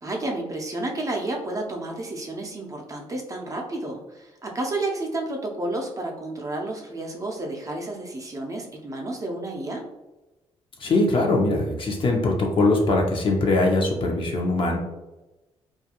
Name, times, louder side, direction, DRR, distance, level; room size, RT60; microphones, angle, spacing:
voice 1, 0.0-9.8, right 2 dB, 30° right, 0 dB, 0.5 m, -31 dB
voice 2, 10.8-14.8, left 2 dB, 50° left, 0 dB, 0.7 m, -21 dB
2.4 x 2.2 x 2.8 m, 1.0 s
cardioid pair, 70°, 11 cm